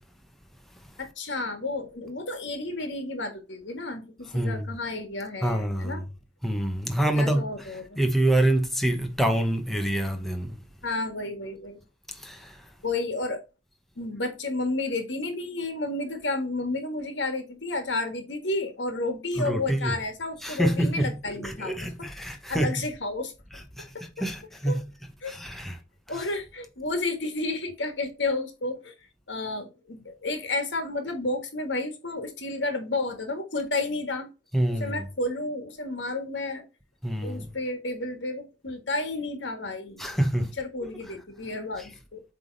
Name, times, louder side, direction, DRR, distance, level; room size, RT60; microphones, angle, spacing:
voice 1, 1.0-6.0 7.1-8.0 10.8-11.8 12.8-13.4 13.9-22.1 22.5-23.3 23.9-24.0 24.6-24.8 25.2-25.4 26.1-28.9 29.3-34.3 34.8-36.6 37.2-40.0 40.4-42.2, left 2 dB, 70° left, 1.7 m, -31 dB
voice 2, 4.3-4.7 5.4-6.0 6.4-7.4 8.0-10.6 12.1-12.6 19.4-19.9 20.4-22.8 23.8-23.9 24.2-24.8 25.3-25.8 34.5-35.0 37.0-37.5 40.0-40.5, right 1 dB, ahead, 0.9 m, -26 dB
7.9 x 3.5 x 4.0 m
head